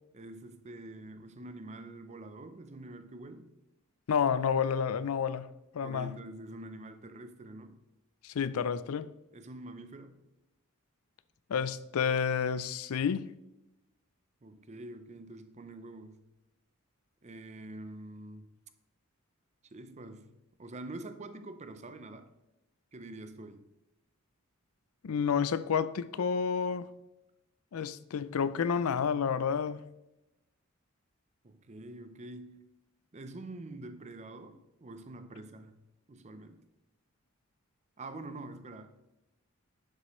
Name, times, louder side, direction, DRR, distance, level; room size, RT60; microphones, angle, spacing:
voice 1, 0.1-3.6 5.8-7.8 9.3-10.2 14.4-16.2 17.2-18.5 19.7-20.3 20.6-22.3 22.9-23.7 31.4-32.7 33.1-35.8 36.1-36.7 38.0-38.9, right 2 dB, 30° right, 0.6 m, -46 dB
voice 2, 4.1-5.5 5.7-6.1 8.2-9.1 11.5-13.3 25.0-26.9 27.7-29.8, left 6 dB, 85° left, 0.4 m, -30 dB
10.5 x 7.4 x 3.1 m
head